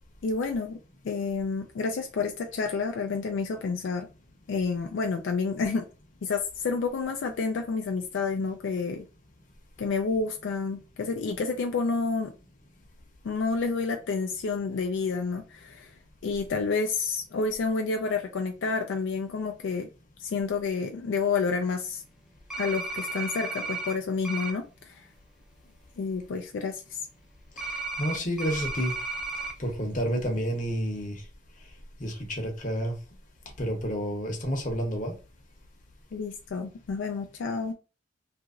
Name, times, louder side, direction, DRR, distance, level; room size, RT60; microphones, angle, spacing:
voice 1, 0.2-0.8 1.0-4.1 4.5-5.9 6.2-9.0 9.8-12.3 13.2-15.9 16.2-19.9 20.2-22.0 22.6-25.1 26.0-27.0 36.1-37.7, left 4 dB, 70° left, 0.3 m, -29 dB
sound 1, 22.5-23.9 24.2-24.5 27.6-29.5, right 3 dB, 5° right, 0.3 m, -34 dB
voice 2, 27.6-29.0 29.6-31.3 31.6-33.0 33.6-35.2, equal, 40° left, 0.8 m, -30 dB
2.8 x 2.5 x 2.3 m
head